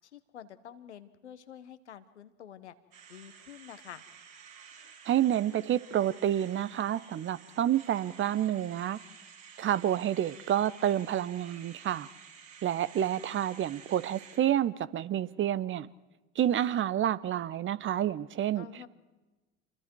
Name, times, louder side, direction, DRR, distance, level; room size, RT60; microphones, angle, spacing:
voice 1, 0.0-2.7 3.1-4.0 18.5-18.9, left 9 dB, 80° left, 1.3 m, -48 dB
sound 1, 2.9-14.4, right 7 dB, 55° right, 6.7 m, -52 dB
voice 2, 5.1-9.0 9.6-12.1 12.6-15.9 16.4-18.7, right 11 dB, 35° right, 0.9 m, -29 dB
28.0 x 23.5 x 4.7 m
figure-of-eight pair, 65°, 34 cm